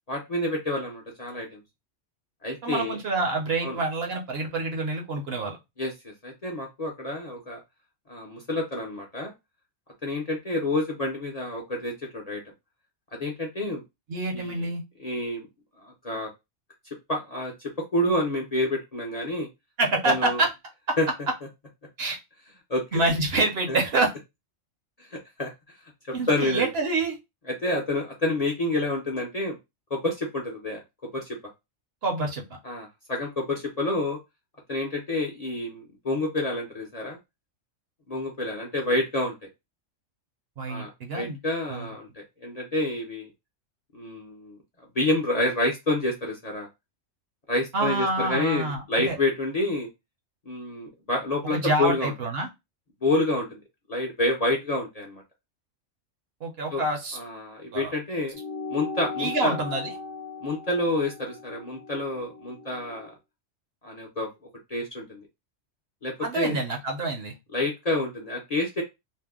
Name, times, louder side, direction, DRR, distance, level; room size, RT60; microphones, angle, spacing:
voice 1, 0.1-1.6 2.4-2.9 3.6-3.8 5.8-7.6 8.1-9.3 10.0-12.4 13.2-13.8 14.3-14.7 15.0-15.5 15.8-16.3 17.1-17.5 17.9-19.5 20.0-20.4 21.0-21.1 22.7-23.0 23.7-23.8 25.1-25.5 26.1-26.7 27.6-29.6 29.9-30.8 31.1-31.4 32.6-34.2 34.7-37.2 38.1-39.3 40.7-43.3 43.9-46.7 47.5-49.9 50.5-52.1 53.0-53.6 53.9-55.2 56.7-56.8 57.1-58.4 58.7-59.6 60.4-63.1 63.8-64.3 64.7-65.2 66.0-66.6 67.5-68.8, left 2 dB, 40° left, -1 dB, 0.6 m, -28 dB
voice 2, 2.6-5.6 14.1-14.8 19.8-20.5 20.9-21.0 22.0-22.2 22.9-24.1 26.1-27.2 32.0-32.4 40.6-41.4 41.7-41.9 47.7-49.2 51.5-52.5 56.4-57.2 57.7-57.9 59.2-60.0 66.2-67.3, right 2 dB, 60° right, 2 dB, 0.9 m, -27 dB
sound 1, 58.3-63.1, left 4 dB, 70° left, 0.9 m, -38 dB
2.7 x 2.1 x 3.5 m, 0.22 s
omnidirectional pair, 1.3 m